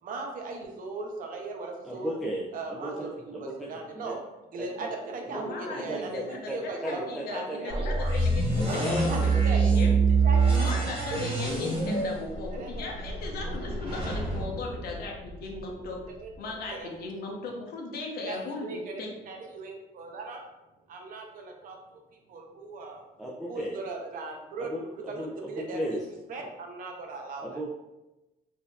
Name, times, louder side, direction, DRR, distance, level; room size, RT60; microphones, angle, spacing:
voice 1, 0.0-2.1 2.5-4.2 4.5-7.8 8.6-9.7 10.2-10.5 11.1-11.3 12.6-13.2 13.4-13.5 16.2-16.3 16.7-16.9 18.3-20.4 20.9-22.0 22.3-23.0 23.5-26.0 26.3-27.6, right 3 dB, 55° right, 2 dB, 0.7 m, -38 dB
voice 2, 1.8-2.4 2.7-4.1 4.8-4.9 5.2-5.4 5.8-7.6 8.8-9.8 23.2-23.8 24.7-26.0 27.4-27.7, right 1 dB, ahead, -4 dB, 0.4 m, -36 dB
voice 3, 5.3-9.9 10.4-16.0 16.4-19.1, left 3 dB, 65° left, 0 dB, 0.8 m, -37 dB
sound 1, 7.7-15.6, right 4 dB, 30° right, 1.2 m, -26 dB
4.1 x 2.7 x 2.3 m, 1.0 s
cardioid pair, 110°, 17 cm